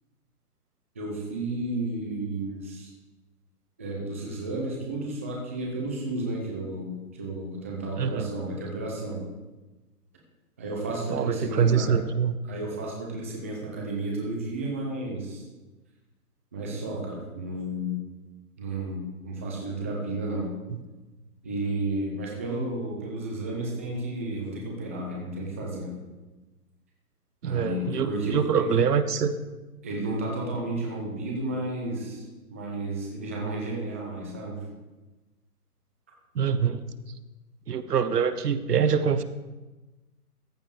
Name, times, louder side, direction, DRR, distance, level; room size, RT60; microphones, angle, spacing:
voice 1, 0.9-2.9 3.8-9.2 10.6-12.0 12.4-15.4 16.5-18.0 18.6-20.5 21.4-25.9 27.4-28.7 29.8-34.6, right 2 dB, 10° right, -2 dB, 0.5 m, -32 dB
voice 2, 8.0-8.3 11.1-12.3 27.4-29.3 36.3-36.8 37.7-39.2, right 7 dB, 90° right, 12 dB, 0.9 m, -24 dB
14.0 x 5.2 x 4.8 m, 1.1 s
hypercardioid pair, 155°, 46 cm